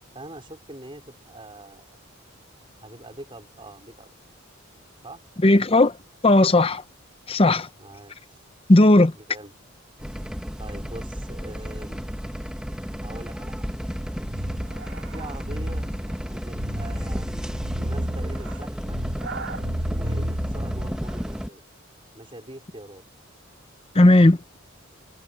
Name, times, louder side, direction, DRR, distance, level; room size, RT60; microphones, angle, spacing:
voice 1, 0.1-2.0 2.8-4.1 5.0-5.2 7.8-8.4 9.1-9.5 10.6-12.0 13.0-13.7 15.1-15.9 16.3-19.0 19.8-21.6 22.1-23.0, right 1 dB, 25° right, 5.2 m, -43 dB
voice 2, 5.4-5.9 6.2-6.8 7.3-7.7 8.7-9.1 23.9-24.4, left 2 dB, 25° left, 0.8 m, -15 dB
sound 1, 10.0-21.5, equal, 5° right, 1.2 m, -33 dB
sound 2, 14.2-21.1, equal, 60° right, 3.7 m, -32 dB
head